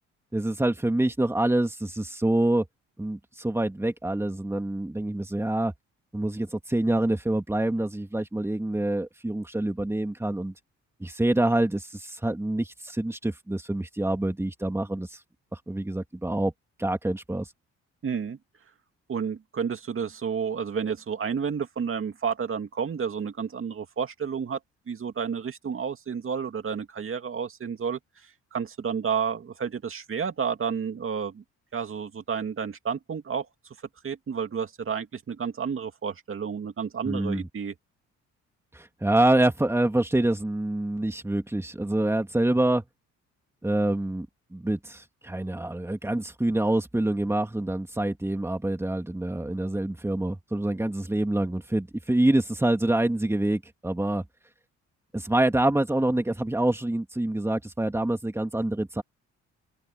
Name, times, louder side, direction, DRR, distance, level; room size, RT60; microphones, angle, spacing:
voice 1, 0.3-2.7 3.0-5.7 6.1-10.5 11.0-15.1 15.5-16.5 16.8-17.5 37.0-37.5 38.7-42.8 43.6-44.3 44.5-54.2 55.1-59.0, right 1 dB, 10° right, 2.5 m, -26 dB
voice 2, 18.0-18.4 19.1-24.6 24.9-31.4 31.7-33.5 34.0-37.7, right 6 dB, 45° right, 2.4 m, -31 dB
open air
cardioid pair, 90°, 30 cm